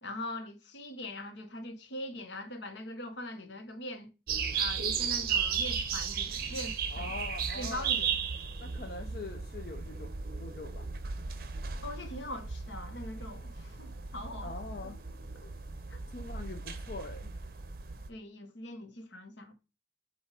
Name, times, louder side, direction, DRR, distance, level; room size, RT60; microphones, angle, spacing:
voice 1, 0.0-4.1 4.5-7.1 7.5-8.2 11.8-14.9 15.3-15.5 15.9-16.0 18.1-19.5, left 1 dB, 80° left, 1.2 m, -42 dB
sound 1, 4.3-18.1, right 6 dB, 50° right, 0.7 m, -35 dB
voice 2, 6.9-8.0 8.6-10.1 10.4-10.9 11.2-11.3 14.4-15.0 16.1-17.3, left 3 dB, 55° left, 0.6 m, -43 dB
7.5 x 2.6 x 4.8 m
head